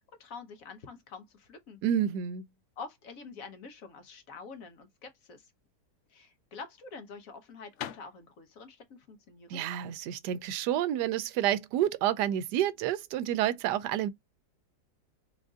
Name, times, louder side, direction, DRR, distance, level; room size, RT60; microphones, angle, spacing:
voice 1, 0.2-1.8 2.8-5.5 6.1-9.6, left 4 dB, 60° left, 1.0 m, -47 dB
voice 2, 1.8-2.4 9.5-14.1, right 11 dB, 75° right, 1.1 m, -29 dB
sound 1, 5.9-11.5, left 10 dB, 85° left, 0.6 m, -47 dB
3.8 x 2.5 x 3.5 m
omnidirectional pair, 1.9 m